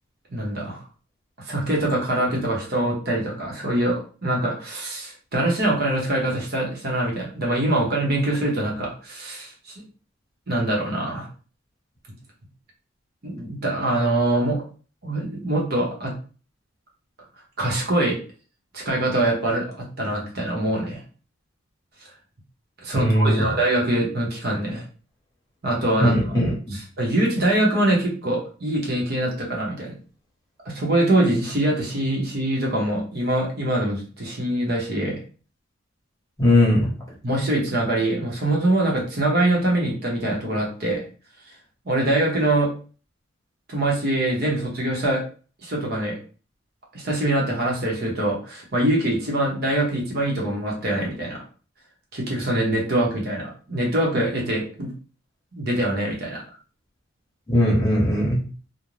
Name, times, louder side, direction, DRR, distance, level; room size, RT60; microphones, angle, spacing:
voice 1, 0.3-0.8 1.4-9.7 10.5-11.3 13.2-14.6 15.0-16.1 17.6-18.2 18.7-21.0 22.8-24.8 25.6-26.3 26.7-29.9 30.6-35.2 37.2-41.1 41.8-42.7 43.7-45.2 45.6-46.2 46.9-51.4 52.1-54.9 55.6-56.4, right 1 dB, 50° right, -2 dB, 0.8 m, -24 dB
voice 2, 22.9-23.5 26.0-26.5 36.4-36.9 57.5-58.4, left 1 dB, 15° left, -5 dB, 0.9 m, -19 dB
2.5 x 2.1 x 3.1 m, 0.38 s
head